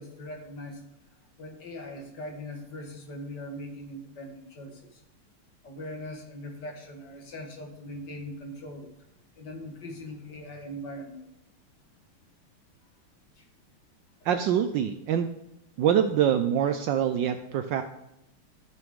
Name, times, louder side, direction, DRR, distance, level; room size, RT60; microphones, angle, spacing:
voice 1, 0.0-5.0 5.6-8.9 9.4-11.3 13.4-13.5, left 1 dB, 55° left, 4 dB, 1.8 m, -41 dB
voice 2, 14.2-15.3 15.8-17.8, right 9 dB, 75° right, 8 dB, 1.1 m, -25 dB
13.5 x 6.1 x 3.6 m, 0.89 s
omnidirectional pair, 2.4 m